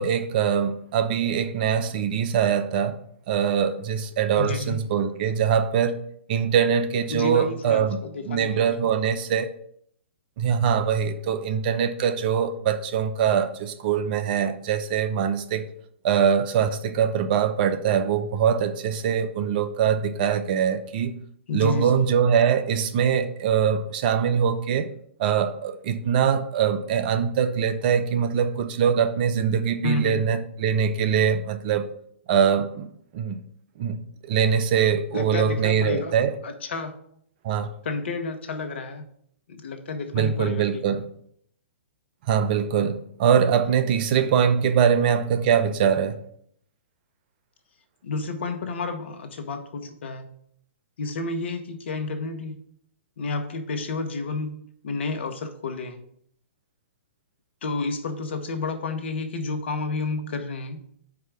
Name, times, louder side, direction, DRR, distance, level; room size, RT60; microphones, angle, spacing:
voice 1, 0.0-3.0 3.3-6.0 6.3-8.0 8.2-9.5 10.4-15.6 16.0-21.1 21.5-24.9 25.2-31.9 32.3-32.9 33.1-33.3 33.8-34.0 34.2-36.4 37.4-37.7 40.1-41.0 42.3-46.1, right 7 dB, 45° right, 0.7 m, -23 dB
voice 2, 4.4-4.8 7.1-8.9 21.5-21.9 29.8-30.4 35.1-36.1 36.4-37.0 37.8-39.1 39.5-40.8 48.0-50.3 51.0-52.6 53.2-56.0 57.6-60.8, left 3 dB, 65° left, 1.1 m, -31 dB
4.8 x 4.6 x 6.0 m
hypercardioid pair, 120°, 7 cm